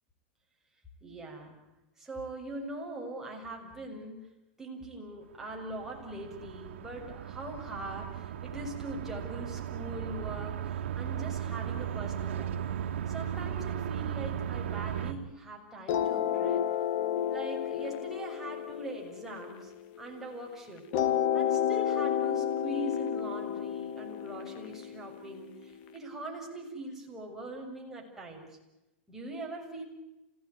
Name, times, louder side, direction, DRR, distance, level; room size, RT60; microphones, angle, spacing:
voice 1, 1.0-1.6 2.0-12.6 13.1-16.6 17.3-19.7 20.0-20.9 21.3-28.5 29.1-29.8, right 1 dB, 5° right, -2 dB, 6.7 m, -42 dB
sound 1, 5.3-15.1, right 9 dB, 80° right, 2.1 m, -36 dB
sound 2, 15.9-20.3 20.9-25.9, left 9 dB, 55° left, 2.3 m, -31 dB
29.0 x 17.0 x 9.7 m, 0.97 s
supercardioid pair, 125°, 6 cm